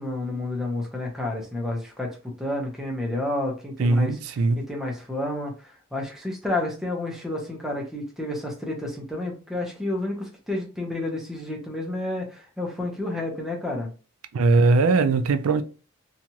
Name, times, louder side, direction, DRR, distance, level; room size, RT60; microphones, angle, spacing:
voice 1, 0.0-4.2 4.6-13.9, left 2 dB, ahead, 0.6 m, -30 dB
voice 2, 3.8-4.6 14.3-15.6, right 3 dB, 70° right, 0.4 m, -20 dB
2.8 x 2.4 x 2.8 m
head